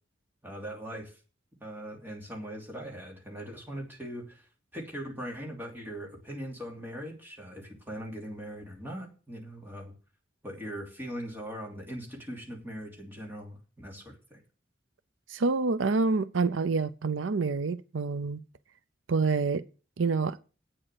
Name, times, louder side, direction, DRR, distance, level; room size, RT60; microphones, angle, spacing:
voice 1, 0.4-1.1 1.6-4.5 4.7-9.9 10.4-14.4, equal, 10° right, 3.0 m, -40 dB
voice 2, 15.3-18.4 19.1-19.6 20.0-20.4, right 4 dB, 85° right, 0.6 m, -27 dB
8.9 x 6.6 x 7.9 m
head